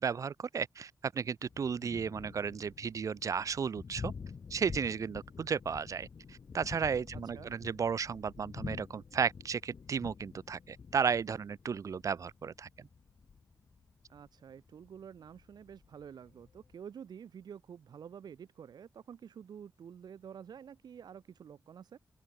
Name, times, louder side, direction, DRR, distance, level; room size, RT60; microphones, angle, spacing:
voice 1, 0.0-4.1 4.5-12.9, right 6 dB, 50° right, 0.7 m, -34 dB
Thunder, 1.5-16.7, left 5 dB, 50° left, 6.0 m, -48 dB
voice 2, 7.2-7.6 14.1-22.0, right 8 dB, 85° right, 6.6 m, -49 dB
open air
wide cardioid pair, 150°, 7 cm